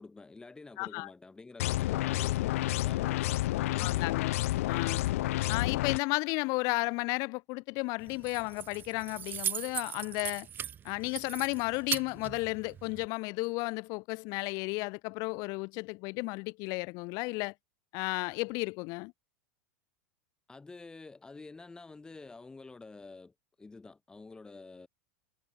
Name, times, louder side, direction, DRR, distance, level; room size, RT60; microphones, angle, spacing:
voice 1, 0.0-4.2 20.5-24.9, left 3 dB, 10° left, 7.7 m, -49 dB
voice 2, 0.8-1.1 3.8-4.4 4.7-5.1 5.5-10.5 10.8-17.5 17.9-19.1, left 27 dB, 50° left, 4.3 m, -33 dB
sound 1, 1.6-6.0, left 16 dB, 80° left, 0.5 m, -30 dB
Keys jangling, 8.0-13.1, right 9 dB, 25° right, 7.8 m, -39 dB
supercardioid pair, 135°, 7 cm